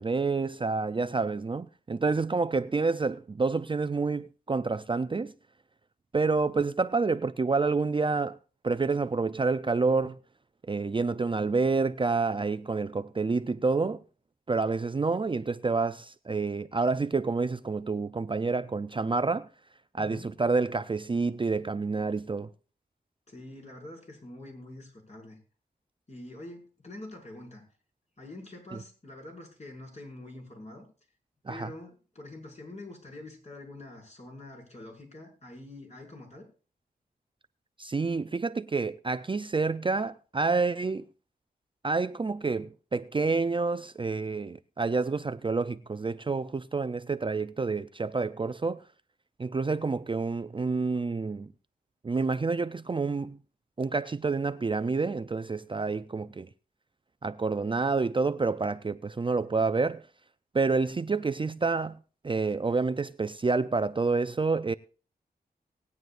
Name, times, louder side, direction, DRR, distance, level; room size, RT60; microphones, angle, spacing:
voice 1, 0.0-5.3 6.1-8.4 8.6-10.2 10.7-14.0 14.5-19.5 20.0-22.5 31.5-31.7 37.8-41.0 41.8-48.8 49.4-51.5 52.0-53.4 53.8-56.5 57.2-60.1 60.5-62.0 62.2-64.7, right 4 dB, 30° right, 0.5 m, -28 dB
voice 2, 20.0-20.3 23.3-25.4 26.1-27.6 28.2-30.9 31.5-36.5, left 2 dB, 45° left, 5.7 m, -45 dB
19.5 x 9.4 x 2.5 m
cardioid pair, 65°, 17 cm